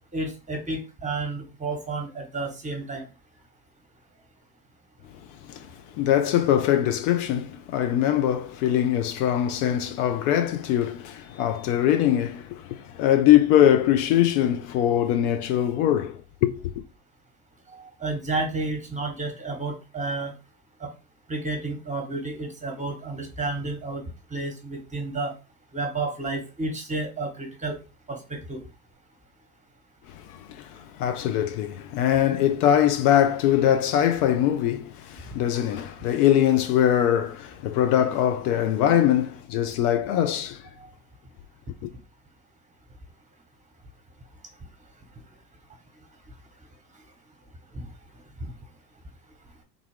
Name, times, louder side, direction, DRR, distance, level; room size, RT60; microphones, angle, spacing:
voice 1, 0.1-3.1 17.7-20.3 20.8-20.9 21.3-24.0 24.3-25.3 25.7-27.8 28.1-28.6 40.8-40.9 47.7-47.9 48.4-48.5, right 3 dB, 15° right, 1.1 m, -31 dB
voice 2, 5.3-16.8 30.1-40.7 41.8-41.9, left 11 dB, 65° left, 0.6 m, -22 dB
3.5 x 2.3 x 3.5 m
hypercardioid pair, 70°, 49 cm